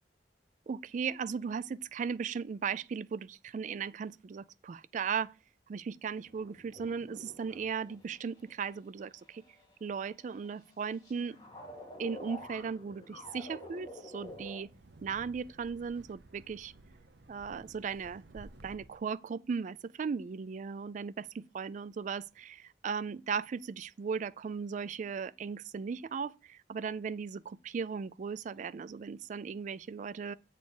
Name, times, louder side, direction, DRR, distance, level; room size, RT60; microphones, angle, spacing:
voice 1, 0.7-5.3 5.7-9.4 9.8-11.4 12.0-14.7 15.0-16.7 17.3-30.3, right 6 dB, 45° right, 0.3 m, -37 dB
sound 1, 6.2-14.6, left 1 dB, 25° left, 2.6 m, -49 dB
Wind, 14.1-19.1, right 2 dB, 75° right, 0.7 m, -55 dB
8.0 x 4.2 x 4.8 m
head